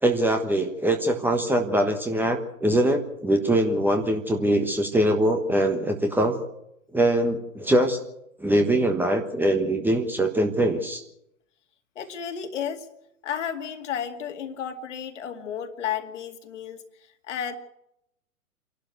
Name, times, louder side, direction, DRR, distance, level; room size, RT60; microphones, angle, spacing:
voice 1, 0.0-6.4 6.9-8.0 8.4-11.0, right 1 dB, 5° right, 4 dB, 1.3 m, -23 dB
voice 2, 12.0-12.9 13.2-16.8 17.3-17.5, left 8 dB, 55° left, 7 dB, 2.3 m, -32 dB
27.5 x 12.0 x 8.1 m, 0.81 s
figure-of-eight pair, 110°, 44 cm